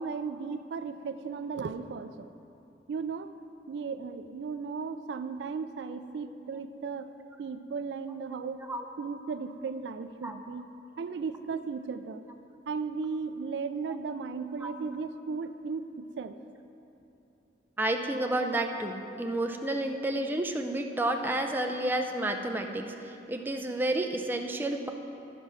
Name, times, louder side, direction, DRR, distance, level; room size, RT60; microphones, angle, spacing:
voice 1, 0.0-2.3 2.9-3.3 3.7-7.1 7.4-8.7 9.0-12.2 12.7-16.4, right 5 dB, 70° right, 10 dB, 0.3 m, -36 dB
voice 2, 17.8-24.9, right 1 dB, 10° right, 3 dB, 0.5 m, -31 dB
12.5 x 4.8 x 5.7 m, 2.8 s
head